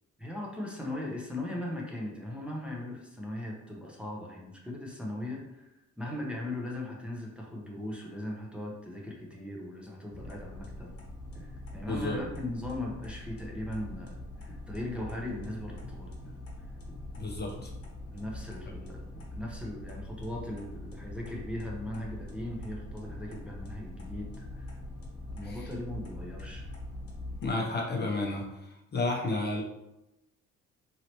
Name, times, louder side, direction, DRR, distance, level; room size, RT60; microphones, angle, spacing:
voice 1, 0.2-5.7 6.0-10.9 11.3-16.1 18.1-24.8 25.3-26.6, left 1 dB, 5° right, -2 dB, 0.7 m, -39 dB
Car Indicator (Toyota Aygo), 10.1-27.5, left 1 dB, 50° left, 1.0 m, -43 dB
voice 2, 11.9-12.2 17.2-17.7 25.4-25.6 27.4-28.4 28.9-29.6, left 2 dB, 35° left, -1 dB, 0.6 m, -31 dB
3.1 x 2.8 x 2.9 m, 0.93 s
cardioid pair, 90°, 30 cm